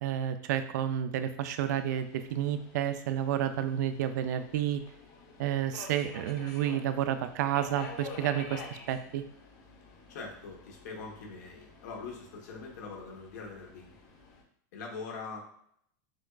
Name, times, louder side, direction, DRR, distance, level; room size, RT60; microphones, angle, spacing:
voice 1, 0.0-4.8 5.4-8.6 8.9-9.2, right 10 dB, 75° right, 10 dB, 0.4 m, -30 dB
Subway metro underground, 1.6-14.4, left 4 dB, 45° left, 0.8 m, -49 dB
voice 2, 10.1-14.0 14.7-15.4, left 4 dB, 75° left, 0 dB, 1.1 m, -43 dB
5.9 x 2.4 x 2.3 m, 0.68 s
supercardioid pair, 145°, 9 cm